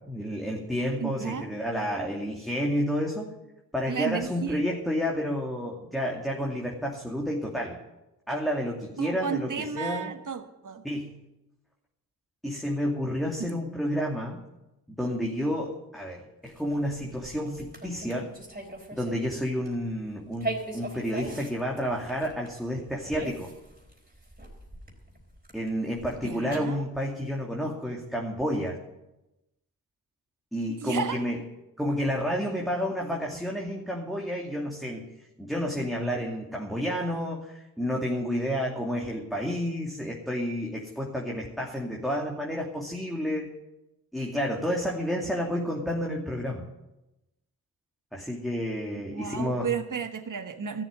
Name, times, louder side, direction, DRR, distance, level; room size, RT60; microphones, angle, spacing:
voice 1, 0.1-3.3 3.7-7.8 8.3-10.1 10.8-11.2 12.4-14.4 14.9-18.3 18.9-23.5 25.5-28.8 30.5-31.4 31.8-35.1 35.4-43.5 44.1-46.7 48.1-49.7, equal, ahead, -2 dB, 2.5 m, -30 dB
voice 2, 1.0-1.5 3.9-4.8 9.0-10.8 13.4-13.5 26.2-26.8 30.8-31.2 49.1-50.8, right 6 dB, 50° right, 8 dB, 1.4 m, -33 dB
sound 1, 16.5-19.4 19.6-19.9 20.3-26.6, right 2 dB, 20° right, 4.2 m, -40 dB
13.5 x 7.4 x 10.0 m, 0.97 s
supercardioid pair, 40°, 42 cm